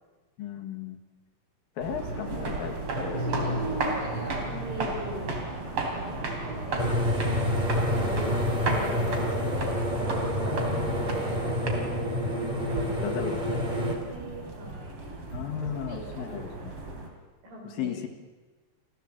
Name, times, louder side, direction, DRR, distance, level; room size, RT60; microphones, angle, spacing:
voice 1, 0.4-1.0 1.8-3.9 10.4-11.1 13.0-13.6 15.3-16.7 17.6-18.1, left 9 dB, 80° left, 5 dB, 3.3 m, -36 dB
sound 1, 1.8-17.1, right 2 dB, 40° right, 3.6 m, -34 dB
voice 2, 3.0-5.6 5.9-7.3 7.9-11.8 12.4-15.0 15.6-16.5 17.4-18.1, right 2 dB, 80° right, 0 dB, 7.2 m, -41 dB
sound 2, 6.8-14.0, equal, 15° right, 2.8 m, -28 dB
27.5 x 15.5 x 7.5 m, 1.3 s
omnidirectional pair, 4.0 m